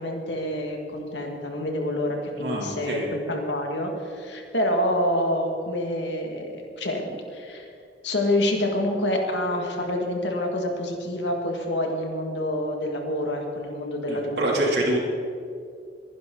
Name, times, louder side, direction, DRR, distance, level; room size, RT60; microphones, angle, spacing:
voice 1, 0.0-7.7 8.0-14.7, left 1 dB, 85° left, 2 dB, 2.3 m, -27 dB
voice 2, 2.4-3.1 14.1-15.0, right 1 dB, 70° right, -2 dB, 3.3 m, -25 dB
22.5 x 10.5 x 4.1 m, 2.4 s
head